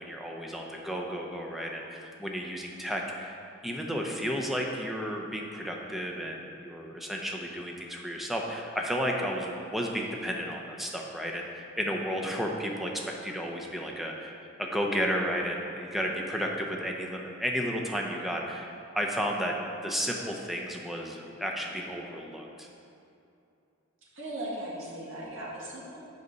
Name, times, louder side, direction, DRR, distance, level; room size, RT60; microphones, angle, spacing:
voice 1, 0.0-3.4 3.6-18.7 18.9-19.6 19.8-22.7, equal, ahead, -1 dB, 0.7 m, -33 dB
voice 2, 24.2-26.0, right 1 dB, 85° right, -5 dB, 2.0 m, -38 dB
6.7 x 5.4 x 6.8 m, 2.6 s
head